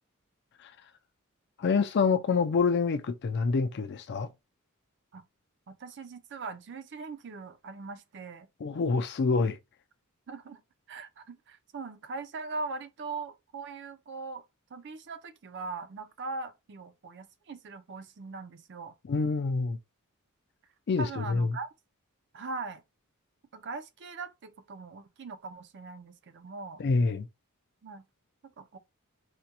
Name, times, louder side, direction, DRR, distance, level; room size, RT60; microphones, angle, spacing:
voice 1, 1.6-4.3 8.6-9.6 19.1-19.8 20.9-21.6 26.8-27.3, left 4 dB, 50° left, 0.4 m, -27 dB
voice 2, 5.7-8.5 10.3-10.6 10.9-14.4 14.7-18.9 21.0-21.7 22.3-22.8 23.5-26.8 27.8-28.1 28.6-28.8, right 3 dB, 55° right, 0.5 m, -40 dB
4.9 x 2.2 x 2.8 m
head